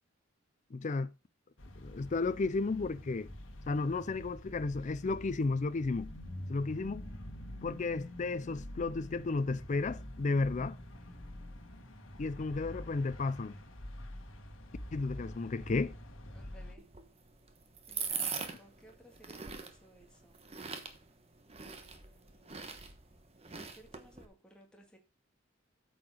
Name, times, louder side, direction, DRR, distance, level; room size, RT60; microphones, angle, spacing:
voice 1, 0.7-1.1 1.8-3.3 3.7-6.1 6.5-7.1 7.6-10.8 12.2-13.6 14.9-15.9, left 3 dB, 35° left, 0.4 m, -33 dB
sound 1, 1.6-16.7, left 1 dB, 65° left, 1.8 m, -46 dB
voice 2, 16.3-16.9 17.9-20.5 21.6-22.8 23.4-25.0, right 1 dB, 5° left, 2.0 m, -60 dB
sound 2, 16.8-24.3, right 6 dB, 30° right, 1.2 m, -42 dB
8.7 x 4.8 x 6.2 m
head